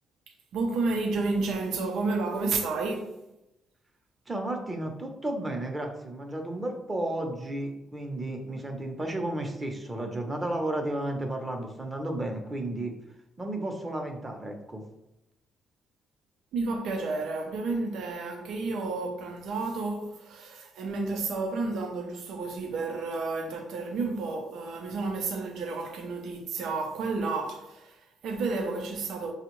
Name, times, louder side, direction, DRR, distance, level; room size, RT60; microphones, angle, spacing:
voice 1, 0.5-3.2 16.5-29.3, right 3 dB, 80° right, 0.7 m, -31 dB
voice 2, 4.3-12.9 13.4-14.8, right 1 dB, 20° right, 0.9 m, -33 dB
6.0 x 2.4 x 3.1 m
cardioid pair, 90°, 0 cm